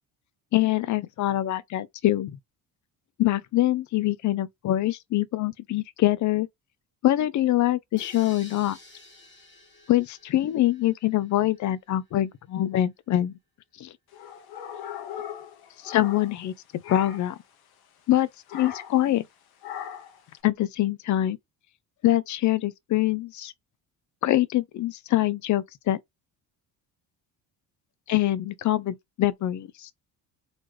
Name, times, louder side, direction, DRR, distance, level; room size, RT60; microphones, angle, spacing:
voice 1, 0.5-2.4 3.2-6.5 7.0-8.8 9.9-13.3 13.8-13.9 15.8-16.5 16.9-17.4 18.1-19.2 20.4-21.4 22.0-23.5 24.2-26.0 28.1-29.9, left 14 dB, 50° left, 0.5 m, -24 dB
sound 1, 8.0-11.7, left 2 dB, 30° left, 1.6 m, -51 dB
sound 2, 14.1-16.5 16.8-17.4 18.5-19.0 19.6-20.2, left 9 dB, 70° left, 1.2 m, -39 dB
4.0 x 3.0 x 3.2 m
cardioid pair, 115°, 39 cm